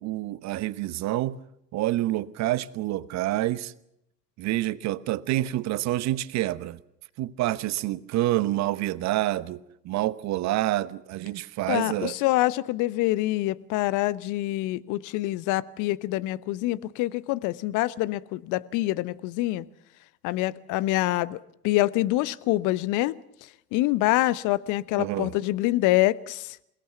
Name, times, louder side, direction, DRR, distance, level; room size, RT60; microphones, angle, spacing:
voice 1, 0.0-1.4 1.7-3.7 4.4-6.8 7.2-12.2 25.0-25.3, right 15 dB, 35° right, 1.0 m, -27 dB
voice 2, 11.7-19.7 20.2-23.2 23.7-26.6, left 17 dB, 40° left, 1.0 m, -26 dB
28.0 x 18.0 x 7.1 m
figure-of-eight pair, 80°, 49 cm